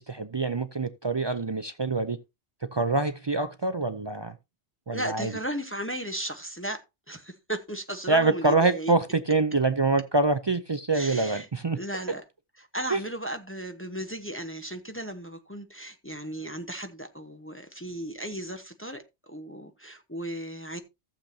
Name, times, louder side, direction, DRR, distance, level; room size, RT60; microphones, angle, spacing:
voice 1, 0.0-2.2 2.6-4.3 4.9-5.3 8.1-11.8 12.9-13.0, right 3 dB, 45° right, 0.3 m, -25 dB
voice 2, 4.9-8.9 10.9-11.5 11.7-12.2 12.7-20.8, right 1 dB, 10° left, 0.9 m, -35 dB
14.5 x 7.4 x 2.8 m
omnidirectional pair, 1.2 m